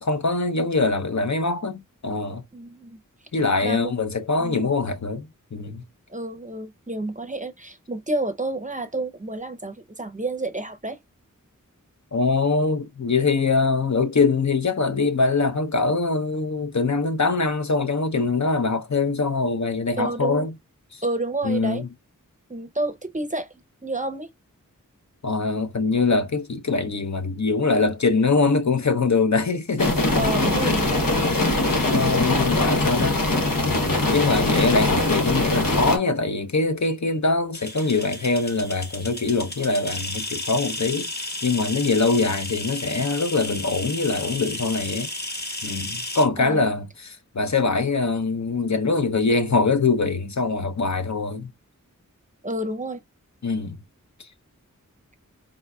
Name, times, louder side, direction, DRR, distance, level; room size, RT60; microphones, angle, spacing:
voice 1, 0.0-2.4 3.3-5.8 12.1-20.6 20.9-21.0 21.4-21.9 25.2-30.3 30.6-30.8 31.3-33.2 34.1-45.1 45.6-51.5 53.4-53.8, left 3 dB, 60° left, 0.7 m, -23 dB
voice 2, 2.5-3.0 3.6-3.9 4.4-4.6 6.1-11.0 20.0-20.5 21.0-21.8 22.5-23.5 23.8-24.3 30.1-31.1 46.4-46.6 52.4-53.0, right 2 dB, 25° right, 0.6 m, -29 dB
sound 1, 29.8-36.0, left 2 dB, 85° left, 1.1 m, -22 dB
sound 2, 37.5-46.3, left 2 dB, 30° left, 1.1 m, -33 dB
4.8 x 3.9 x 2.3 m
wide cardioid pair, 40°, 33 cm